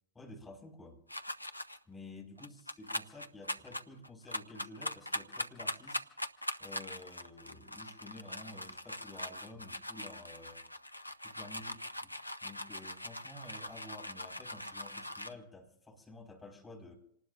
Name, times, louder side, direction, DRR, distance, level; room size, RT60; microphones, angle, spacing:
voice 1, 0.2-1.0 1.9-6.1 6.6-10.6 11.2-12.1 12.4-17.0, left 2 dB, 10° left, 0 dB, 5.1 m, -51 dB
sound 1, 1.1-1.8 2.4-15.3, left 1 dB, 85° left, 0.7 m, -41 dB
27.5 x 19.5 x 2.6 m, 0.72 s
figure-of-eight pair, 90°, 0 cm